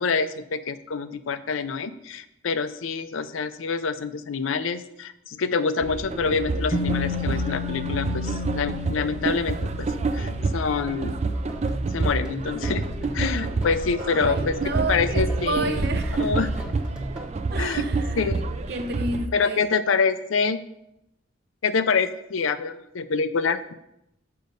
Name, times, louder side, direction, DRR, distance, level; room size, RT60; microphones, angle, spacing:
voice 1, 0.0-9.9 10.1-11.2 11.9-12.9 13.1-14.6 14.9-15.8 16.2-16.5 17.6-17.9 18.1-18.4 19.3-20.6 21.6-23.7, left 5 dB, 90° left, 0.5 m, -26 dB
sound 1, 5.8-19.3, right 3 dB, 35° right, 0.4 m, -28 dB
sound 2, 6.7-10.5, left 6 dB, 35° left, 0.6 m, -33 dB
sound 3, 11.3-17.3, right 1 dB, 5° right, 0.9 m, -40 dB
voice 2, 14.0-16.3 17.5-18.2 18.7-19.6, right 2 dB, 55° right, 0.8 m, -31 dB
6.6 x 5.3 x 5.2 m
head